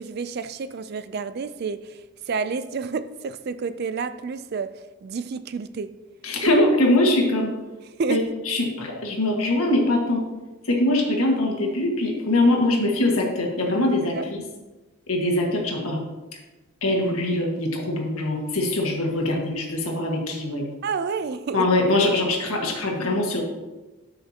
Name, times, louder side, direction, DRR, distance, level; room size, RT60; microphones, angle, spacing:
voice 1, 0.0-2.0 2.3-5.9 8.0-8.2 14.1-14.3 20.8-21.7, right 5 dB, 45° right, 0.3 m, -29 dB
voice 2, 6.2-7.5 8.1-8.2 8.5-10.2 10.6-14.4 15.1-16.0 16.3-16.4 16.8-20.7 21.5-23.4, left 1 dB, 80° left, 1.7 m, -22 dB
12.5 x 5.8 x 2.9 m
head